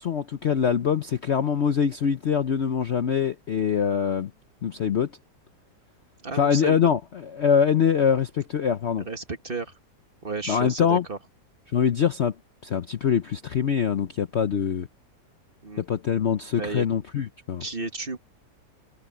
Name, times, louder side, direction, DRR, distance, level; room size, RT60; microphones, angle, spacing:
voice 1, 0.0-4.3 4.6-5.1 6.3-9.1 10.5-11.0 11.7-12.3 12.6-14.9 15.8-17.6, left 7 dB, 55° left, 0.8 m, -24 dB
voice 2, 6.2-6.9 9.0-9.7 10.2-11.2 15.6-15.8 16.6-16.9 17.6-18.2, right 3 dB, 30° right, 1.8 m, -33 dB
omnidirectional pair, 1.9 m